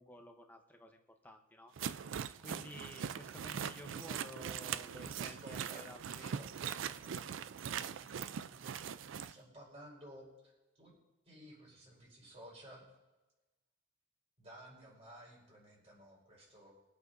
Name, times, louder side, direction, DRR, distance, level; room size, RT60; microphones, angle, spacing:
voice 1, 0.0-1.7 2.4-6.4, left 1 dB, 10° left, 4 dB, 0.8 m, -53 dB
sound 1, 1.8-9.3, right 8 dB, 75° right, 0.4 m, -41 dB
voice 2, 5.2-8.9 9.3-10.5 10.8-10.9 11.3-12.9 14.4-16.7, right 1 dB, 30° right, -5 dB, 4.4 m, -56 dB
23.5 x 8.1 x 2.6 m, 1.1 s
head